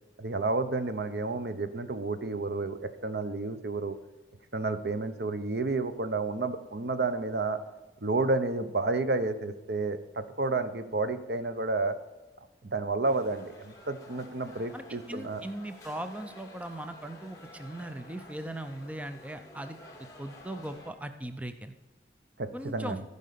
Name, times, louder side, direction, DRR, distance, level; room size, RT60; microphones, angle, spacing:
voice 1, 0.2-4.0 4.5-7.6 8.0-12.0 12.6-15.4 22.4-23.0, right 3 dB, 70° right, 11 dB, 0.8 m, -31 dB
sound 1, 13.0-20.9, left 1 dB, 20° left, 2.1 m, -51 dB
voice 2, 14.7-19.8 20.2-21.8 22.5-23.0, right 1 dB, 10° right, 9 dB, 0.4 m, -39 dB
14.5 x 5.4 x 6.8 m, 1.2 s
head